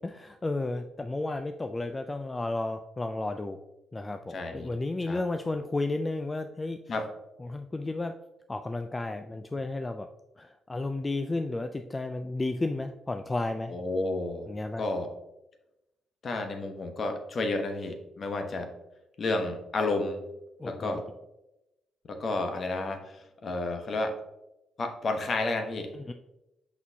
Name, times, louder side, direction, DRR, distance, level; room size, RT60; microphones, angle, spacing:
voice 1, 0.0-3.6 3.9-6.8 7.4-8.1 8.5-10.1 10.4-13.7 14.5-14.9 20.6-21.0 25.9-26.1, left 2 dB, 20° left, 7 dB, 0.3 m, -32 dB
voice 2, 4.3-4.7 5.1-5.2 6.9-7.0 13.7-14.5 14.8-15.1 16.2-18.7 19.2-20.2 20.6-21.0 22.1-24.2 24.8-25.9, left 2 dB, 45° left, 5 dB, 1.0 m, -31 dB
6.1 x 5.8 x 2.8 m, 0.93 s
cardioid pair, 90°, 0 cm